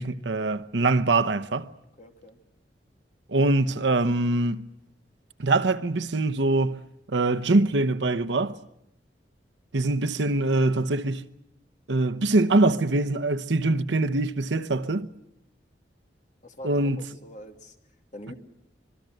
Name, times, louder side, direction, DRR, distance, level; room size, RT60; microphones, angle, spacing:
voice 1, 0.0-1.7 3.3-4.7 5.4-6.8 7.1-8.6 9.7-11.3 11.9-15.1 16.6-17.0, right 2 dB, 85° right, 0.9 m, -23 dB
voice 2, 2.0-2.4 16.4-17.8 18.1-18.3, left 1 dB, 45° left, 2.5 m, -43 dB
25.5 x 22.0 x 7.9 m
head